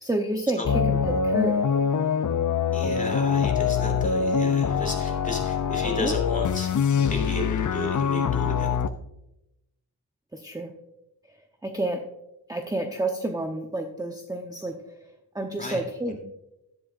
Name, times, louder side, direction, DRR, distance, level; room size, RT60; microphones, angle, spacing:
voice 1, 0.0-1.6 6.0-6.1 10.3-10.7 11.6-12.0 12.5-14.7 15.3-16.2, right 2 dB, 10° right, 3 dB, 0.9 m, -29 dB
sound 1, 0.6-8.9, left 6 dB, 50° left, 0.5 m, -24 dB
voice 2, 2.7-6.7 7.0-8.8 15.6-15.8 16.1-16.2, left 2 dB, 20° left, 1 dB, 3.0 m, -33 dB
12.0 x 10.0 x 2.5 m, 0.88 s
wide cardioid pair, 90°, 40 cm